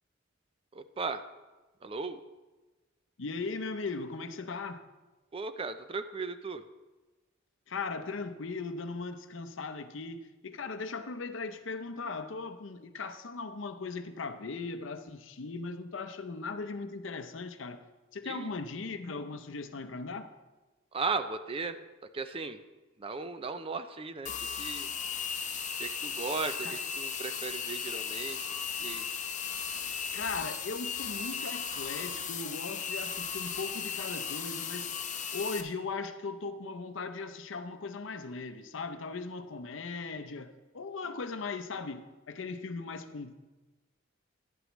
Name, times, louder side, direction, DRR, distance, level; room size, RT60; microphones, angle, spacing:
voice 1, 0.7-1.2 1.8-2.2 5.3-6.6 18.2-18.5 20.9-21.8 22.1-22.6 23.0-24.3 24.6-24.9 25.8-26.7 27.0-28.4 28.8-29.1, right 4 dB, 30° right, 0.4 m, -36 dB
voice 2, 3.2-4.8 7.7-17.9 18.1-20.3 26.6-26.8 30.1-35.0 35.3-43.3, left 4 dB, 70° left, 0.6 m, -38 dB
sound 1, 24.3-35.6, left 6 dB, 40° left, 0.8 m, -36 dB
11.0 x 11.0 x 3.1 m
head